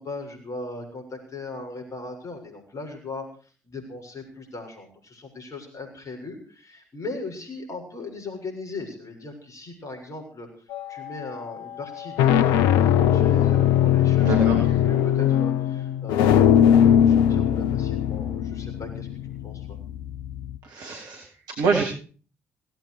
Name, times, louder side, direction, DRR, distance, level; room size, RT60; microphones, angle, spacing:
voice 1, 0.0-3.3 3.6-10.5 10.9-19.1 19.4-19.8, left 3 dB, 40° left, 4 dB, 6.9 m, -38 dB
sound 1, 10.7-11.1 11.9-20.6, left 9 dB, 65° left, 0.8 m, -20 dB
voice 2, 14.2-14.6 20.6-21.2 21.6-21.8, right 4 dB, 60° right, 2 dB, 3.1 m, -25 dB
18.0 x 15.5 x 4.9 m, 0.41 s
figure-of-eight pair, 45°, 8 cm